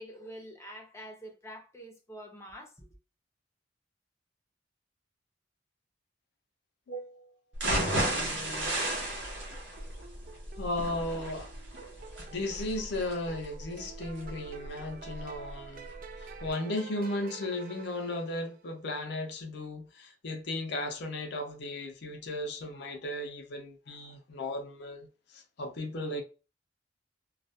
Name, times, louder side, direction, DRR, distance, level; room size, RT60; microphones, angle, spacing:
voice 1, 0.0-2.9, equal, 15° left, 0.6 m, -46 dB
voice 2, 6.9-7.4 7.6-8.8 10.6-11.5 12.2-26.2, left 1 dB, 65° left, 0.5 m, -36 dB
sound 1, 7.5-15.5 15.9-16.0 16.4-16.5, right 1 dB, 80° right, 0.8 m, -34 dB
sound 2, 9.8-18.7, right 5 dB, 50° right, 0.4 m, -49 dB
2.2 x 2.1 x 2.7 m
head